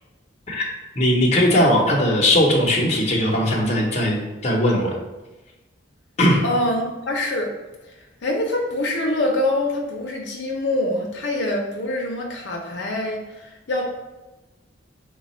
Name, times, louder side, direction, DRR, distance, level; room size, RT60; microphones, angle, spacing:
voice 1, 1.0-4.2 4.4-5.0 6.2-6.4, left 1 dB, 35° left, -2 dB, 0.7 m, -19 dB
voice 2, 6.4-7.5 8.2-13.2 13.7-13.8, left 1 dB, 70° left, 0 dB, 0.6 m, -24 dB
3.9 x 2.3 x 4.1 m, 1.1 s
head